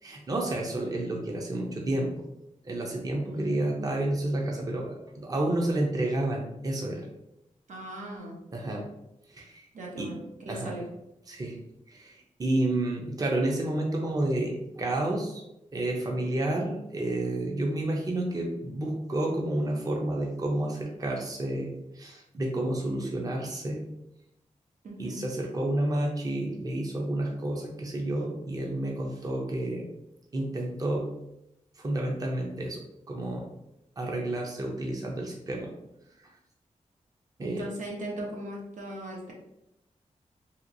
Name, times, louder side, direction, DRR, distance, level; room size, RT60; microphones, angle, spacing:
voice 1, 0.0-2.2 2.6-7.1 8.5-8.8 9.3-9.6 10.0-10.1 10.5-10.8 11.3-11.6 11.9-15.4 15.7-23.8 25.0-29.9 30.3-31.1 31.8-32.8 33.1-33.5 34.0-35.7 37.4-37.6, right 1 dB, 30° right, 0 dB, 0.5 m, -30 dB
voice 2, 3.3-3.8 7.7-8.4 9.7-10.9 24.8-25.2 37.4-39.3, right 1 dB, 85° right, -2 dB, 0.8 m, -38 dB
2.9 x 2.8 x 2.5 m, 0.86 s
wide cardioid pair, 140°, 13 cm